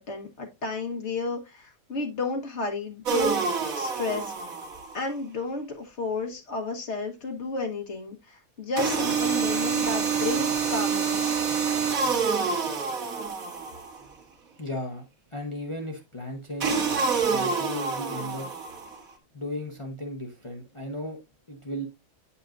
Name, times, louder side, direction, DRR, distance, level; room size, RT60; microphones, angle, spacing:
voice 1, 0.0-4.3 4.9-11.4, left 3 dB, 55° left, 1.5 m, -32 dB
sound 1, 3.1-5.0 8.8-14.0 16.6-19.0, right 5 dB, 85° right, 1.7 m, -27 dB
voice 2, 14.6-18.5 19.3-21.2 21.5-21.9, left 1 dB, 25° left, 0.9 m, -36 dB
8.9 x 5.6 x 2.5 m
omnidirectional pair, 1.4 m